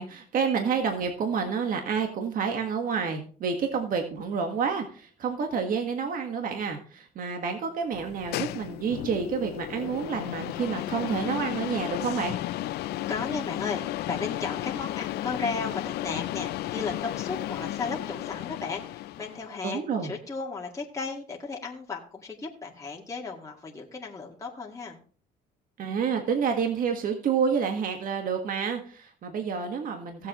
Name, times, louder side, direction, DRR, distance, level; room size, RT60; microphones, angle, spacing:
voice 1, 0.0-12.3 19.6-20.1 25.8-30.3, right 6 dB, 55° right, 4 dB, 1.6 m, -29 dB
sound 1, 7.9-19.5, left 15 dB, 75° left, 0.5 m, -34 dB
voice 2, 12.7-25.0, left 4 dB, 20° left, -2 dB, 2.0 m, -35 dB
16.5 x 7.5 x 3.1 m, 0.43 s
cardioid pair, 110°, 17 cm